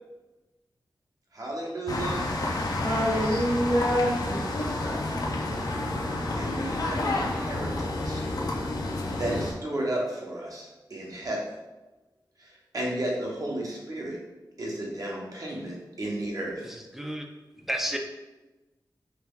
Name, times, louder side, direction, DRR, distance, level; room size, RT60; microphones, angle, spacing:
voice 1, 1.3-2.2 6.4-8.2 9.1-11.4 12.4-14.2 14.6-16.7, right 1 dB, 50° right, -3 dB, 0.8 m, -33 dB
sound 1, 1.9-9.5, left 2 dB, 55° left, 0.4 m, -30 dB
voice 2, 2.8-4.9, equal, 90° left, -9 dB, 0.7 m, -26 dB
voice 3, 16.6-17.2 17.6-18.0, right 1 dB, 5° right, 2 dB, 0.4 m, -32 dB
2.9 x 2.3 x 3.4 m, 1.1 s
wide cardioid pair, 100°, 8 cm